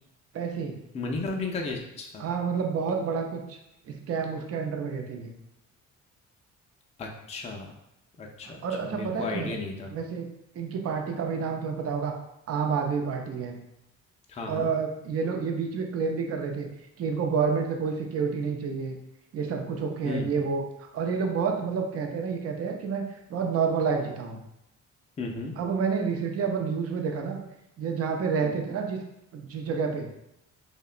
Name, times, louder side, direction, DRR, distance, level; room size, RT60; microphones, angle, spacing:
voice 1, 0.3-0.7 2.2-3.6 3.9-5.3 8.4-9.5 9.9-10.3 10.5-12.1 12.5-13.6 14.5-16.7 17.0-19.0 19.3-20.6 20.9-24.4 25.6-27.4 27.8-29.0 29.3-30.1, right 5 dB, 50° right, 3 dB, 0.5 m, -29 dB
voice 2, 0.9-2.3 7.0-7.7 8.2-9.9 14.3-14.7 20.0-20.3 25.2-25.5 28.4-28.7, left 3 dB, 20° left, 1 dB, 0.4 m, -34 dB
2.8 x 2.1 x 2.4 m, 0.85 s
cardioid pair, 90°, 30 cm